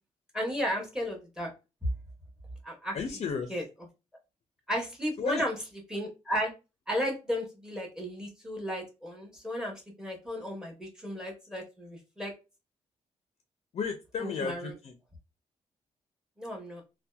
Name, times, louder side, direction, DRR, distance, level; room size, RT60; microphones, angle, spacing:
voice 1, 0.3-1.5 2.7-2.9 3.5-3.6 4.7-5.5 5.9-6.5 6.9-12.3 14.2-14.6 16.4-16.8, equal, 5° right, 1 dB, 0.9 m, -34 dB
voice 2, 2.9-3.6 5.2-5.5 13.7-15.0, left 5 dB, 55° left, 6 dB, 0.4 m, -34 dB
2.7 x 2.1 x 2.2 m, 0.28 s
wide cardioid pair, 135°, 12 cm